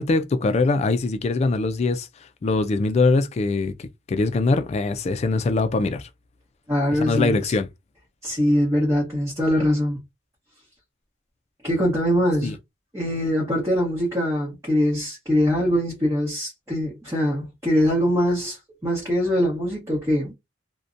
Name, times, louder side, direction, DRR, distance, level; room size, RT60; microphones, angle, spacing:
voice 1, 0.0-2.1 2.4-6.1 6.9-7.7 12.4-12.5, left 3 dB, 35° left, 0.3 m, -22 dB
voice 2, 6.7-7.5 8.2-10.0 11.6-12.6 12.9-18.6 18.8-20.3, equal, 15° right, 0.9 m, -22 dB
2.6 x 2.1 x 2.5 m
head